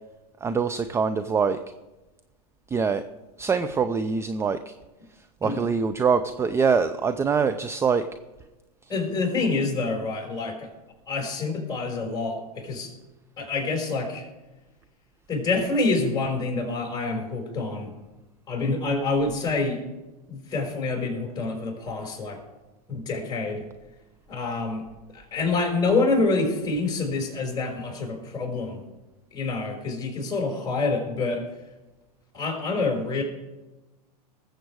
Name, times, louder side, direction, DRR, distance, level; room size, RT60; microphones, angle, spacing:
voice 1, 0.4-1.6 2.7-3.0 3.4-4.7 5.4-8.0, right 5 dB, 15° right, 10 dB, 0.5 m, -24 dB
voice 2, 8.9-10.7 11.1-12.9 13.4-14.3 15.3-17.9 18.5-19.8 20.3-22.4 22.9-23.7 24.3-24.9 25.1-28.8 29.3-31.5 32.3-33.2, left 3 dB, 20° left, 2 dB, 5.0 m, -27 dB
19.5 x 7.9 x 4.8 m, 1.1 s
hypercardioid pair, 115°, 21 cm